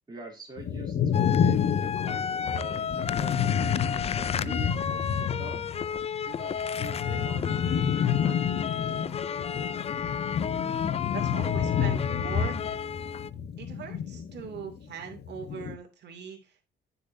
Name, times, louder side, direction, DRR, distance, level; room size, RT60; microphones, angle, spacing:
voice 1, 0.1-3.4 4.1-4.7 5.4-5.6 6.2-8.5, right 3 dB, 20° right, -1 dB, 2.9 m, -45 dB
sound 1, 0.6-5.9 6.2-14.7 15.1-15.8, left 8 dB, 55° left, 0.8 m, -29 dB
sound 2, 1.1-13.3, left 7 dB, 30° left, 0.3 m, -33 dB
voice 2, 11.1-12.6 13.6-16.6, right 7 dB, 60° right, 2 dB, 2.6 m, -41 dB
10.0 x 6.8 x 2.7 m, 0.30 s
cardioid pair, 90°, 20 cm